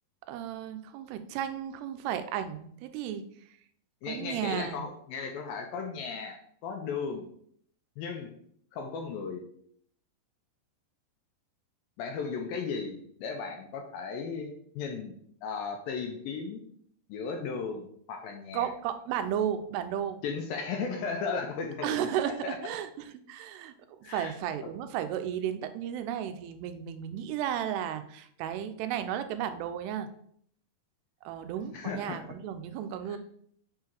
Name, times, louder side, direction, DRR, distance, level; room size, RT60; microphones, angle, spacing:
voice 1, 0.3-3.2 4.1-4.8 18.5-20.2 21.8-23.7 24.0-30.1 31.2-33.2, right 9 dB, 90° right, 9 dB, 2.6 m, -34 dB
voice 2, 4.0-7.3 8.0-8.3 8.7-9.4 12.0-15.2 15.4-16.6 17.1-18.7 20.2-22.6 24.0-24.3 24.6-24.7 31.7-32.2 33.1-33.2, left 5 dB, 80° left, 3 dB, 2.2 m, -36 dB
6.3 x 3.7 x 4.4 m, 0.64 s
omnidirectional pair, 4.6 m